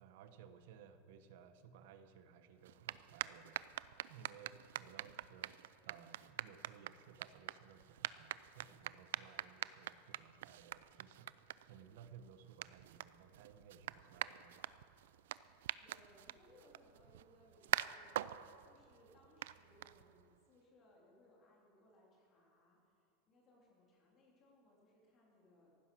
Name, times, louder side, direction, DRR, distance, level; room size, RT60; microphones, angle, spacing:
voice 1, 0.0-3.6 4.1-5.6 5.8-14.7, right 7 dB, 65° right, 10 dB, 1.0 m, -59 dB
sound 1, 2.6-20.4, right 13 dB, 85° right, 0.4 m, -46 dB
voice 2, 15.8-25.7, left 1 dB, 25° left, -2 dB, 3.1 m, -67 dB
15.0 x 12.0 x 6.1 m, 2.6 s
supercardioid pair, 165°, 0 cm